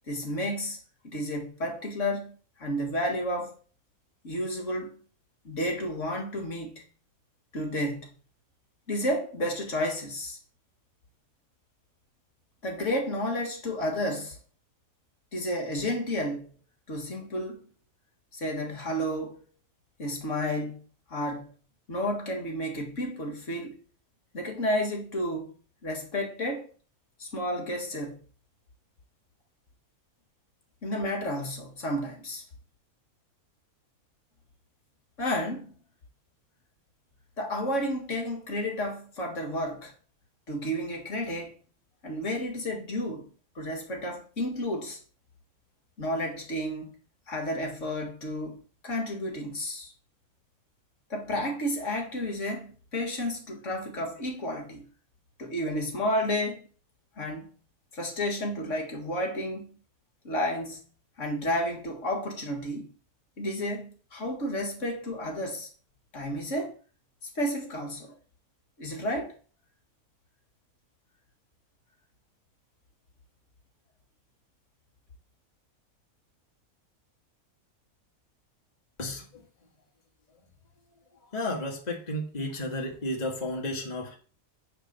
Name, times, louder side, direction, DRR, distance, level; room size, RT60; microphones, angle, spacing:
voice 1, 0.1-0.8 1.0-3.5 4.2-4.9 5.4-6.8 7.5-8.1 8.9-10.4 12.6-14.4 15.3-16.5 16.9-17.6 18.3-19.4 20.0-20.8 21.1-21.5 21.9-23.8 24.3-25.6 25.8-26.7 27.2-28.2 30.8-32.4 35.2-35.7 37.4-39.9 40.5-41.6 42.0-43.3 43.6-45.0 46.0-47.0 47.3-49.9 51.1-54.9 55.4-56.7 57.2-57.5 57.9-59.7 60.2-60.9 61.2-62.9 63.4-65.7 66.1-66.8 67.4-68.1 68.8-69.3, equal, 55° left, 2.0 m, -31 dB
voice 2, 81.3-84.2, left 1 dB, 30° left, 1.5 m, -32 dB
9.0 x 3.5 x 6.6 m
omnidirectional pair, 1.5 m